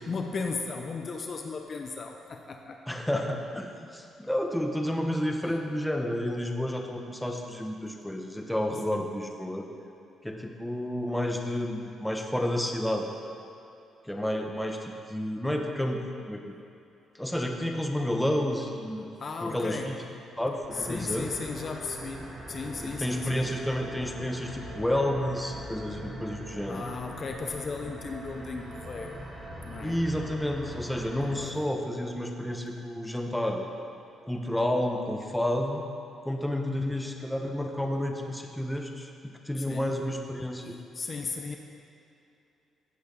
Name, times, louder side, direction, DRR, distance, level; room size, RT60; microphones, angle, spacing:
voice 1, 0.1-2.8 5.4-5.6 19.2-20.0 20.7-23.5 26.6-29.2 29.6-30.0 31.2-31.7 39.6-40.0 40.9-41.6, left 4 dB, 45° left, 4 dB, 0.8 m, -36 dB
voice 2, 2.9-9.7 10.2-13.1 14.1-16.0 16.3-16.4 17.2-19.0 19.4-19.9 20.4-21.3 23.0-26.8 29.8-33.6 34.2-35.8 36.2-39.1 39.4-40.8, left 1 dB, 5° left, 2 dB, 1.1 m, -30 dB
sound 1, 20.7-31.4, right 1 dB, 25° right, 2.3 m, -41 dB
16.0 x 7.8 x 3.9 m, 2.7 s
cardioid pair, 90°, 0 cm